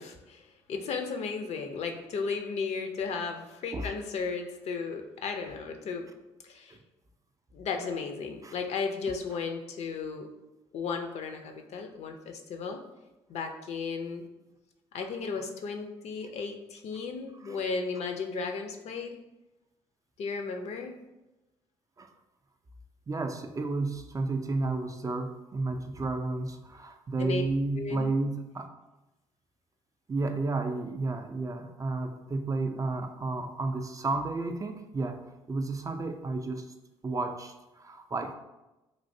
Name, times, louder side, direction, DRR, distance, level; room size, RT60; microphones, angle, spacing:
voice 1, 0.0-6.1 6.4-6.8 7.5-10.3 10.7-12.8 13.3-14.2 14.9-19.1 20.2-20.9 27.2-27.4 27.7-28.1, left 5 dB, 55° left, 4 dB, 0.5 m, -35 dB
voice 2, 23.1-28.7 30.1-35.2 35.5-36.7 37.0-38.3, right 3 dB, 25° right, 6 dB, 0.3 m, -32 dB
3.2 x 2.5 x 2.6 m, 1.0 s
hypercardioid pair, 55°, 13 cm